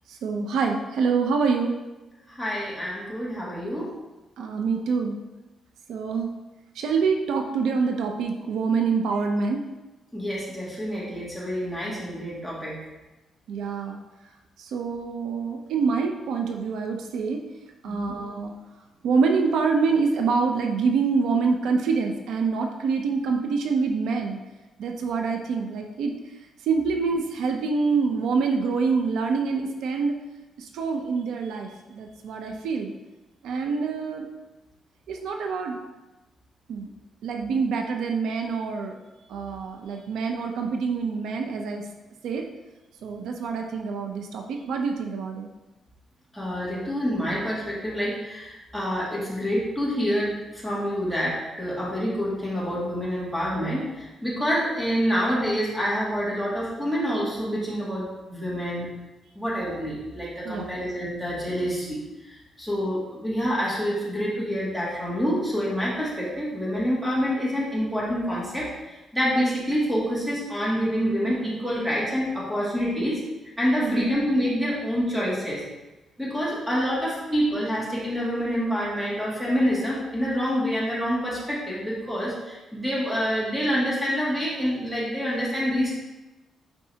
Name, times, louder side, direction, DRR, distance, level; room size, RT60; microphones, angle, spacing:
voice 1, 0.1-1.7 4.4-5.2 5.9-6.3 6.7-9.6 13.5-14.0 14.6-17.4 17.8-18.5 19.0-24.4 24.8-26.1 26.6-30.1 30.6-32.9 33.4-34.3 35.1-35.8 36.7-36.9 37.2-39.0 39.3-41.8 42.2-42.4 43.0-45.5 60.4-60.8 73.8-74.1, right 5 dB, 85° right, 3 dB, 0.7 m, -26 dB
voice 2, 2.3-3.9 10.1-12.8 17.8-18.1 33.6-33.7 46.3-58.9 59.3-73.2 73.6-75.6 76.2-85.9, equal, 5° right, -7 dB, 2.4 m, -27 dB
9.7 x 4.7 x 2.9 m, 1.1 s
cardioid pair, 135°, 0 cm